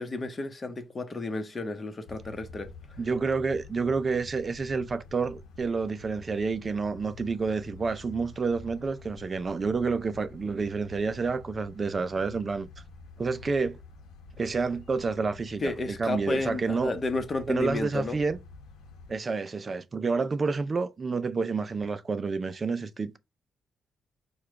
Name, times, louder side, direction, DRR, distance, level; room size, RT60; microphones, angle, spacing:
voice 1, 0.0-2.7 15.6-18.2, left 2 dB, 30° left, 1.0 m, -32 dB
sound 1, 2.0-19.2, left 3 dB, 85° left, 0.9 m, -48 dB
voice 2, 3.0-12.7 13.2-13.8 14.4-15.7 16.0-16.9 17.5-18.4 19.1-23.2, right 4 dB, 35° right, 0.4 m, -29 dB
4.7 x 2.3 x 4.6 m
cardioid pair, 90°, 0 cm